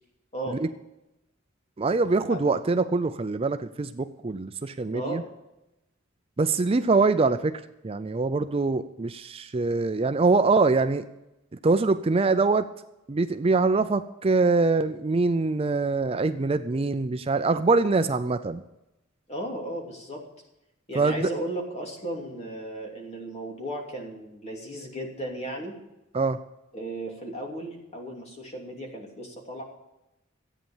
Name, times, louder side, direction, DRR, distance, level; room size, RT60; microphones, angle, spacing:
voice 1, 1.8-5.2 6.4-11.1 11.6-12.7 13.1-18.6 20.9-21.3 26.1-26.4, right 3 dB, 30° right, 10 dB, 0.4 m, -24 dB
voice 2, 4.9-5.3 19.3-20.2 20.9-25.8 26.7-29.6, right 1 dB, 35° left, 1 dB, 2.9 m, -35 dB
14.0 x 9.1 x 7.2 m, 0.94 s
head